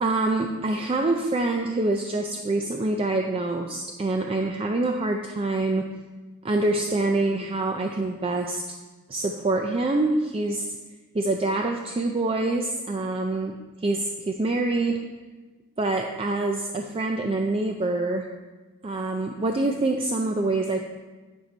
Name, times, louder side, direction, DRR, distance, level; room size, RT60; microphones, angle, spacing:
voice 1, 0.0-5.9 6.4-8.6 9.1-10.7 11.1-13.6 13.8-15.0 15.8-18.3 18.8-20.8, right 2 dB, 25° right, 3 dB, 0.4 m, -25 dB
9.7 x 5.2 x 4.3 m, 1.3 s
head